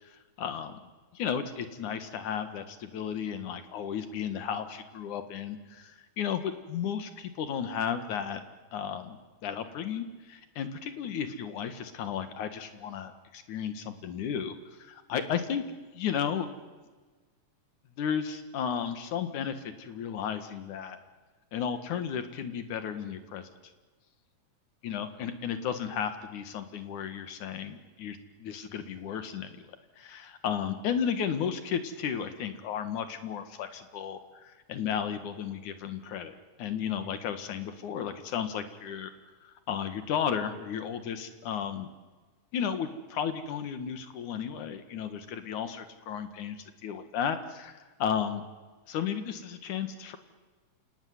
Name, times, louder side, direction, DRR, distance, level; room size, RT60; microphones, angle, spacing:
voice 1, 0.4-0.8 1.1-8.4 8.7-15.6 15.9-16.5 18.0-21.0 21.5-23.5 24.8-29.7 30.0-36.3 36.6-39.1 39.4-41.9 42.5-48.4 48.9-50.2, left 8 dB, 90° left, 9 dB, 3.2 m, -34 dB
28.0 x 18.5 x 9.7 m, 1.3 s
omnidirectional pair, 3.4 m